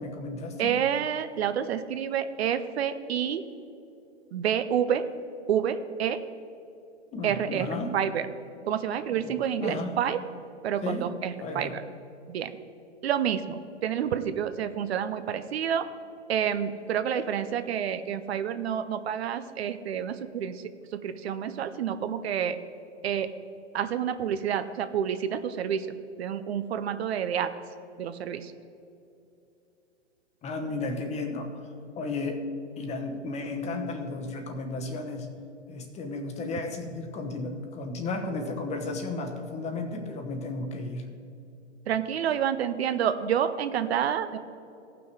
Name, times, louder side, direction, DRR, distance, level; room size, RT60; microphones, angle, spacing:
voice 1, 0.0-0.7 7.1-7.9 9.1-9.9 10.8-11.1 11.4-11.7 30.4-31.6 32.0-32.5 32.8-35.3 35.7-41.0, left 2 dB, 20° left, 5 dB, 1.0 m, -34 dB
voice 2, 0.6-3.4 4.3-5.1 5.5-6.2 7.2-8.3 8.7-10.2 10.6-11.8 12.3-12.5 13.0-15.9 16.3-20.6 20.9-22.6 23.0-23.3 23.7-25.9 26.2-27.5 28.0-28.5 41.9-44.4, right 8 dB, 60° right, 11 dB, 0.7 m, -28 dB
16.0 x 6.1 x 4.7 m, 2.7 s
hypercardioid pair, 120°, 36 cm